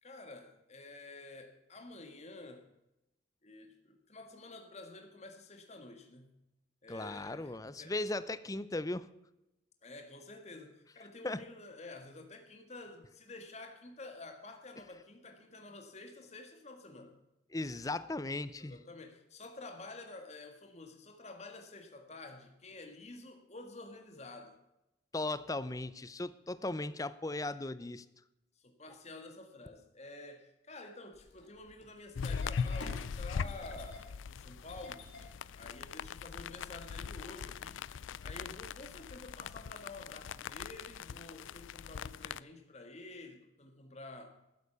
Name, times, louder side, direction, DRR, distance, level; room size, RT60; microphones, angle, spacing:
voice 1, 0.0-2.7 3.4-6.3 6.8-7.9 9.8-17.2 18.6-24.6 28.6-35.0 35.6-37.9 38.2-44.4, left 2 dB, 35° left, 5 dB, 1.8 m, -50 dB
voice 2, 6.9-9.1 11.2-11.4 17.5-18.8 25.1-28.1, left 2 dB, 20° left, 15 dB, 0.5 m, -37 dB
Engine starting, 31.1-36.1, left 2 dB, 70° left, 3.2 m, -51 dB
sound 1, 32.2-42.4, left 6 dB, 90° left, 0.4 m, -41 dB
14.0 x 8.2 x 6.8 m, 0.90 s
head